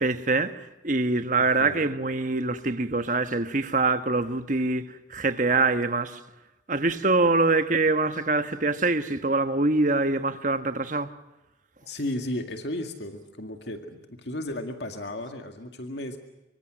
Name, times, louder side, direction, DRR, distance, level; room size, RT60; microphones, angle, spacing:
voice 1, 0.0-6.2 6.7-11.1, right 3 dB, 45° right, 1.2 m, -24 dB
voice 2, 11.8-16.2, left 1 dB, 70° left, 2.1 m, -34 dB
26.0 x 24.0 x 6.4 m
head